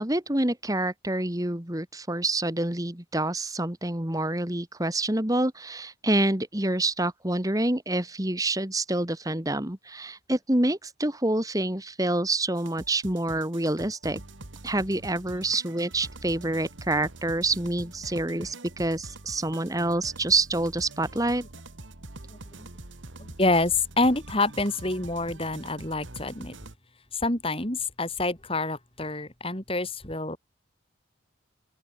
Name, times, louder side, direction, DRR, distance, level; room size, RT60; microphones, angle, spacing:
voice 1, 0.0-14.2 14.6-21.4, right 2 dB, 15° right, 1.8 m, -27 dB
sound 1, 12.6-26.8, right 2 dB, 75° right, 2.3 m, -44 dB
voice 2, 22.3-22.7 23.2-26.5 27.1-30.4, left 2 dB, 30° left, 3.9 m, -27 dB
open air
head